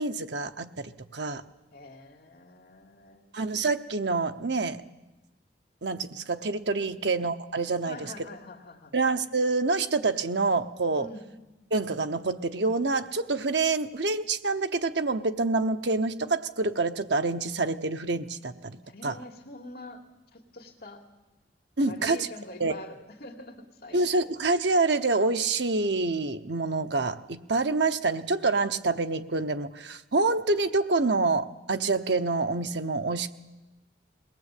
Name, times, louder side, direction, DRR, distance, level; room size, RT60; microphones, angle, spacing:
voice 1, 0.0-1.4 3.3-4.8 5.8-8.0 8.9-11.1 11.7-18.8 19.0-19.1 21.8-22.3 22.6-22.7 23.9-33.3, right 3 dB, 70° right, 9 dB, 1.0 m, -27 dB
voice 2, 1.7-3.4 6.9-7.0 7.9-8.9 11.0-11.3 18.8-20.0 20.3-21.1 21.8-24.4, left 2 dB, 60° left, 2 dB, 2.5 m, -45 dB
22.0 x 18.5 x 8.5 m, 1.1 s
head